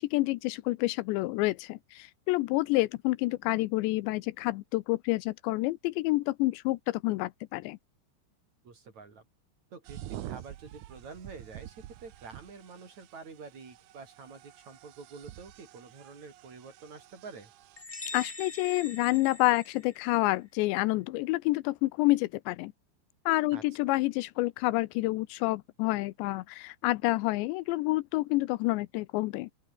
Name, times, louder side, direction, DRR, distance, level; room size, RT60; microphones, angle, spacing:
voice 1, 0.0-7.8 18.1-22.7 23.3-29.5, left 20 dB, 85° left, 2.9 m, -28 dB
voice 2, 8.6-9.2 9.7-17.5 23.5-23.6, right 4 dB, 40° right, 5.1 m, -48 dB
sound 1, 9.9-17.8, right 14 dB, 80° right, 1.8 m, -47 dB
sound 2, 17.8-20.3, left 3 dB, 20° left, 1.1 m, -43 dB
open air
omnidirectional pair, 5.1 m